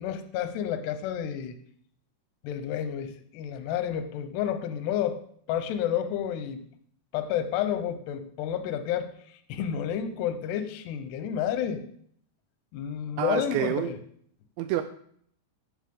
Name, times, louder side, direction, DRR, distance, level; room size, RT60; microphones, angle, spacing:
voice 1, 0.0-1.6 2.4-5.2 5.5-6.6 7.1-9.1 9.5-11.8 12.7-14.0, left 9 dB, 75° left, 8 dB, 2.8 m, -30 dB
voice 2, 13.2-14.0 14.6-14.8, right 12 dB, 80° right, 9 dB, 2.7 m, -28 dB
15.5 x 8.4 x 3.8 m, 0.63 s
omnidirectional pair, 5.6 m